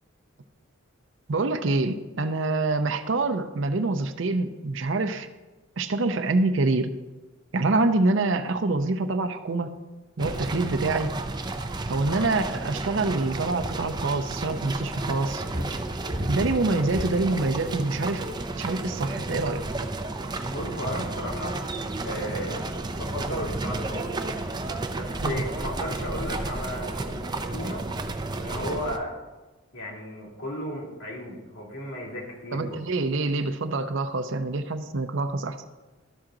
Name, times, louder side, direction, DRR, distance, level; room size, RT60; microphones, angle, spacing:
voice 1, 1.3-5.3 5.8-6.9 7.5-9.8 10.2-11.1 11.9-15.4 16.3-18.3 18.6-19.6 25.2-25.4 32.5-35.6, right 3 dB, 65° right, 9 dB, 0.6 m, -26 dB
sound 1, 10.2-29.0, right 2 dB, 20° right, 0.5 m, -32 dB
sound 2, 15.5-17.5 18.1-18.6, equal, 50° right, 1.4 m, -32 dB
voice 2, 20.5-21.6 22.0-22.6 22.9-24.0 24.9-27.8 28.4-29.1 29.7-32.8, equal, 75° left, -3 dB, 2.7 m, -34 dB
12.5 x 6.0 x 3.8 m, 1.2 s
head